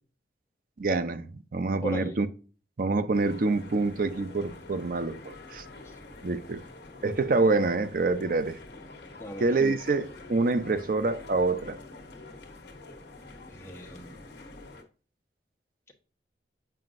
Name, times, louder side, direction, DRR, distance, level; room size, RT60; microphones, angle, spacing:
voice 1, 0.8-2.3 2.8-5.6 6.2-6.6 7.0-8.6 9.4-11.8, right 3 dB, 50° right, 0.5 m, -26 dB
voice 2, 1.8-2.2 5.8-5.9 9.2-9.5 13.5-14.2, equal, 15° left, 1.1 m, -38 dB
sound 1, 3.1-14.8, left 2 dB, 70° left, 1.2 m, -46 dB
7.7 x 5.0 x 2.5 m
head